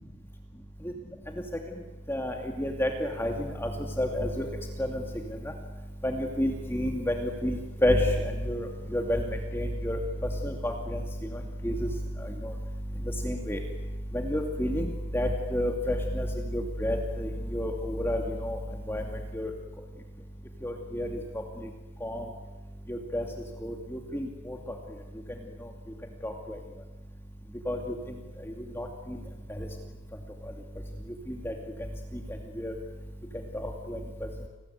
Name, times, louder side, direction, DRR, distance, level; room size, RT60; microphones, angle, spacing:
voice 1, 2.1-3.7 4.0-4.5 4.8-5.0 6.0-8.7 8.9-9.2 9.5-10.0 10.4-11.0 11.6-11.9 12.4-12.5 13.2-13.6 14.1-16.3 16.5-18.6 18.9-19.0 19.3-19.5 20.6-21.1 22.0-22.2 22.9-23.2 23.6-24.6 26.2-26.3 27.7-27.8 28.8-28.9 31.4-31.5 32.6-32.7 33.6-34.3, left 1 dB, 10° left, 3 dB, 2.4 m, -29 dB
30.0 x 20.0 x 9.4 m, 1.2 s
head